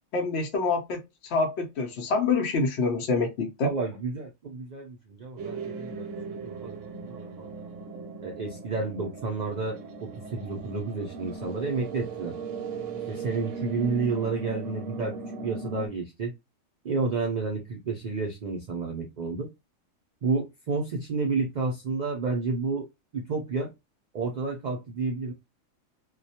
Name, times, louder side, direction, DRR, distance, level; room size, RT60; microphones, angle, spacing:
voice 1, 0.1-3.7, left 3 dB, 60° left, 0.8 m, -26 dB
voice 2, 3.6-7.5 8.2-12.4 13.1-15.2 15.4-16.3 16.8-19.5 20.2-22.9 23.1-23.7 24.1-25.3, right 4 dB, 90° right, 0.3 m, -31 dB
sound 1, 5.4-15.9, right 3 dB, 70° right, 0.9 m, -38 dB
2.3 x 2.1 x 2.7 m
omnidirectional pair, 1.4 m